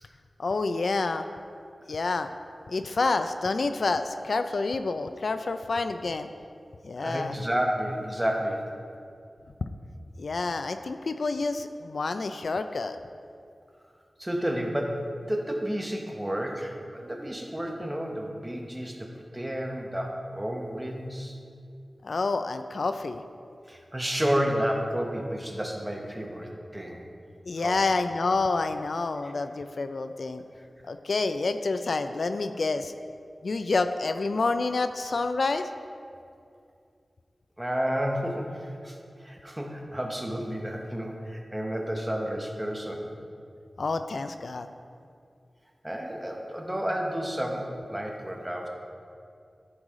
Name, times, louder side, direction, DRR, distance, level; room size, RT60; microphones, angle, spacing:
voice 1, 0.4-1.3 1.9-2.3 2.7-6.3 6.8-7.3 10.2-13.0 22.0-23.2 27.4-30.4 30.9-32.9 33.4-35.7 43.8-44.7, left 3 dB, 75° left, 9 dB, 0.3 m, -28 dB
voice 2, 7.0-8.7 14.2-19.1 19.3-21.4 23.7-27.0 27.6-27.8 37.6-43.0 45.8-48.7, equal, 15° right, 1 dB, 1.1 m, -31 dB
13.5 x 4.8 x 3.7 m, 2.4 s
wide cardioid pair, 80°, 0 cm